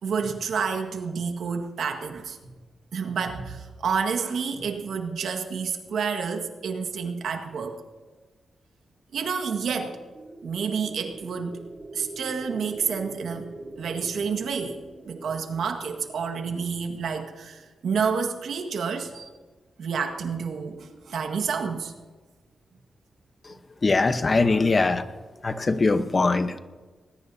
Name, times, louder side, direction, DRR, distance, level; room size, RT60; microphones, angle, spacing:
voice 1, 0.0-2.4 2.9-7.8 9.1-10.0 10.4-11.6 11.9-13.5 13.8-14.8 15.1-19.3 19.8-21.9, right 6 dB, 85° right, 4 dB, 1.7 m, -29 dB
sound 1, 9.7-17.8, right 2 dB, 45° right, 4.0 m, -43 dB
voice 2, 23.8-25.0 25.4-26.6, left 3 dB, 35° left, 10 dB, 1.0 m, -22 dB
20.5 x 20.0 x 2.8 m, 1.3 s
cardioid pair, 85°, 0 cm